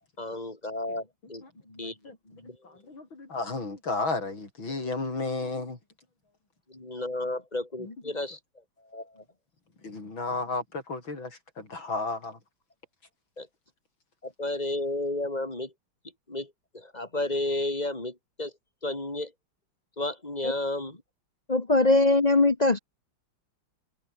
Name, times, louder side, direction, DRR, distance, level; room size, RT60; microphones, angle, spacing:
voice 1, 0.2-2.8 6.7-8.4 8.8-9.2 13.4-13.5 14.2-15.7 16.3-18.5 18.8-19.3 20.0-21.0, left 2 dB, 20° left, 4.4 m, -33 dB
voice 2, 1.8-2.2 2.6-5.8 7.8-7.9 9.8-12.4, left 3 dB, 70° left, 5.9 m, -33 dB
voice 3, 21.5-22.8, left 2 dB, 35° left, 0.7 m, -20 dB
omnidirectional pair, 2.3 m